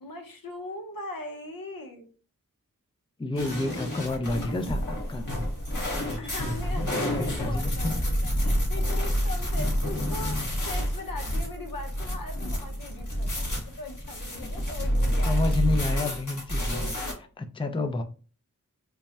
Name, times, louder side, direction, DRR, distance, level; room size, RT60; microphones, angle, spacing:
voice 1, 0.0-2.1 6.2-15.5, left 2 dB, 80° left, 3 dB, 0.8 m, -40 dB
voice 2, 3.2-5.3 6.1-6.4 6.7-8.0 15.3-18.0, left 2 dB, 15° left, 7 dB, 0.4 m, -30 dB
sound 1, 3.4-17.1, equal, 65° left, 1.3 m, -29 dB
sound 2, 4.7-6.3, right 1 dB, 15° right, 0.9 m, -36 dB
3.4 x 2.1 x 4.1 m, 0.37 s
wide cardioid pair, 55°, 33 cm